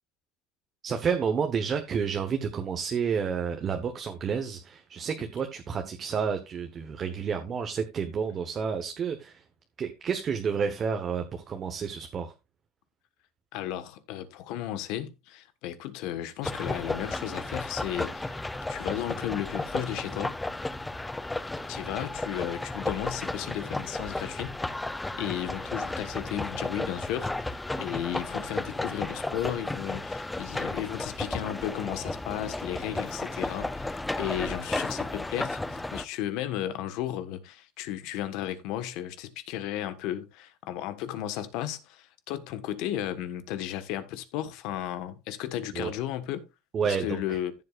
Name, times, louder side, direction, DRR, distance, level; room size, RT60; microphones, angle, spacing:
voice 1, 0.8-9.4 9.8-12.3 45.7-45.9 46.7-47.4, right 6 dB, 30° right, 1.1 m, -30 dB
voice 2, 13.5-20.3 21.7-24.7 25.1-46.5 46.8-47.5, left 12 dB, 65° left, 1.3 m, -34 dB
sound 1, 16.4-36.0, left 2 dB, 10° left, 0.5 m, -34 dB
14.5 x 7.5 x 2.4 m
cardioid pair, 145°, 0 cm